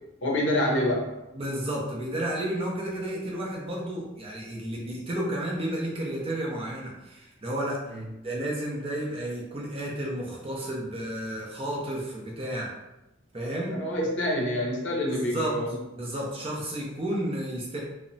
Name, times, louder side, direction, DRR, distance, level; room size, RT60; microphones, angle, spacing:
voice 1, 0.2-1.1 7.9-8.0 13.7-15.7, left 1 dB, 65° left, -2 dB, 0.6 m, -27 dB
voice 2, 1.3-7.8 8.2-12.7 13.3-13.8 15.0-15.5 15.9-17.8, right 1 dB, 30° right, -3 dB, 0.5 m, -32 dB
2.8 x 2.1 x 2.6 m, 0.94 s
head